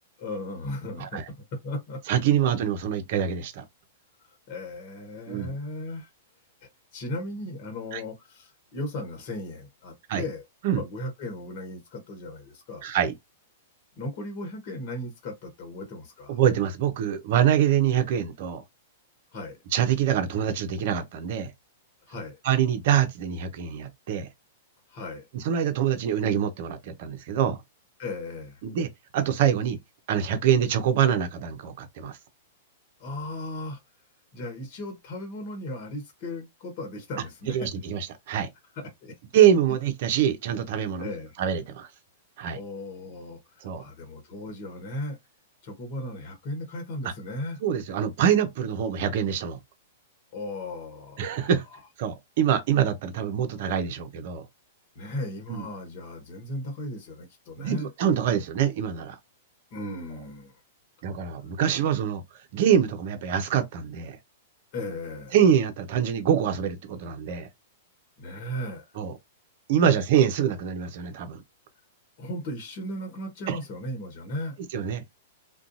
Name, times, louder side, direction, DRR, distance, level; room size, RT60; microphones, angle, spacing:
voice 1, 0.2-1.2 1.5-2.0 4.2-6.1 6.6-10.4 10.7-12.9 14.0-16.4 19.3-19.6 22.1-22.4 24.9-25.3 28.0-28.6 33.0-33.8 34.3-37.7 38.8-39.1 41.0-41.4 42.5-45.2 45.6-47.6 50.3-51.5 54.9-57.9 59.7-60.6 64.7-65.4 68.2-68.8 72.2-74.6, left 1 dB, 45° left, 1.1 m, -36 dB
voice 2, 2.1-3.6 5.3-5.5 7.9-8.0 10.1-10.2 10.6-10.8 12.8-13.1 16.3-18.6 19.7-21.5 22.4-24.3 25.3-27.6 28.6-29.8 30.1-32.2 37.5-38.5 39.3-41.1 41.4-41.9 42.4-42.6 43.6-43.8 47.6-49.6 51.2-51.6 52.0-54.4 55.5-55.7 57.6-59.2 61.0-62.2 62.5-64.2 65.3-67.5 69.0-69.1 69.7-71.4 73.5-73.6 74.7-75.1, right 9 dB, 55° right, 0.6 m, -25 dB
2.5 x 2.2 x 2.6 m
hypercardioid pair, 115°, 0 cm